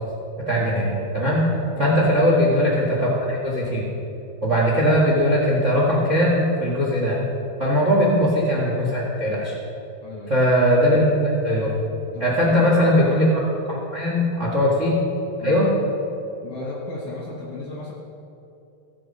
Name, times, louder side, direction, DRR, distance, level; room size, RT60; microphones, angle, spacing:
voice 1, 0.4-1.4 1.8-3.9 4.4-7.2 7.6-9.5 10.3-11.0 11.4-11.7 12.2-15.0 15.4-15.7, equal, 45° right, -4 dB, 0.9 m, -20 dB
voice 2, 1.7-2.1 10.0-10.5 12.1-12.7 14.3-14.4 15.4-15.6 16.4-17.9, left 2 dB, 55° left, -3 dB, 1.8 m, -35 dB
16.0 x 7.6 x 5.4 m, 2.7 s
omnidirectional pair, 4.8 m